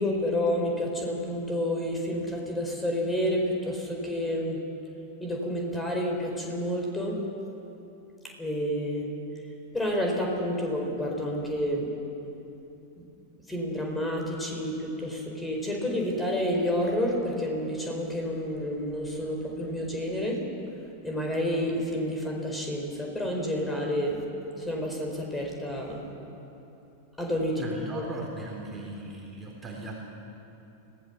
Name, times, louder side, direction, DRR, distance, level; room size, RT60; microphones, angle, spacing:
voice 1, 0.0-4.6 5.2-7.2 8.4-9.1 9.7-11.9 13.0-13.1 13.5-20.4 21.0-24.2 24.6-26.0 27.2-27.6 27.9-28.1, equal, 10° left, 0 dB, 4.7 m, -29 dB
voice 2, 27.6-29.9, right 2 dB, 15° right, -2 dB, 3.7 m, -38 dB
25.0 x 17.5 x 7.2 m, 2.9 s
figure-of-eight pair, 90°, 0 cm